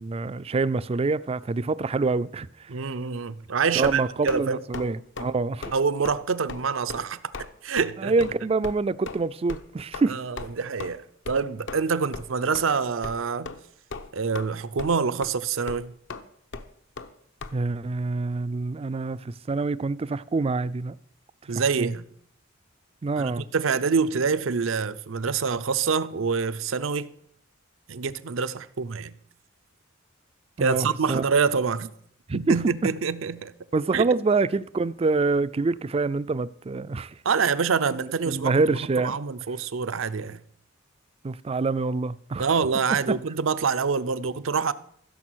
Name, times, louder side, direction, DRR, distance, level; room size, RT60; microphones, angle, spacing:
voice 1, 0.0-2.5 3.8-5.7 8.0-10.2 17.5-20.9 21.8-21.9 23.0-23.4 30.6-31.2 32.3-32.5 33.7-37.1 38.3-39.2 41.2-42.5 43.1-43.2, right 3 dB, 30° right, 0.4 m, -26 dB
voice 2, 2.7-4.6 5.7-8.1 10.1-13.5 14.1-15.9 21.5-22.0 23.2-27.1 27.9-29.2 30.6-31.9 32.3-33.5 33.9-34.1 37.2-40.4 42.4-44.7, right 5 dB, 75° right, 0.6 m, -26 dB
sound 1, 3.8-4.4 4.7-4.9 5.2-5.3 5.6-5.8 6.1-6.2 6.5-6.6 6.9-7.0 7.3-7.5 7.8-7.9 8.2-8.3 8.6-8.7 9.1-9.2 9.5-9.6 9.9-10.1 10.4-10.5 10.8-10.9 11.3-11.4 11.7-11.8 12.1-12.3 12.5-12.6 13.0-13.2 13.5-13.6 13.9-14.5 14.8-15.0 15.2-15.3 15.7-15.8 16.1-16.2 16.5-16.7 17.0-17.1 17.4-17.5, left 3 dB, 65° left, 0.9 m, -36 dB
15.0 x 6.8 x 6.3 m
head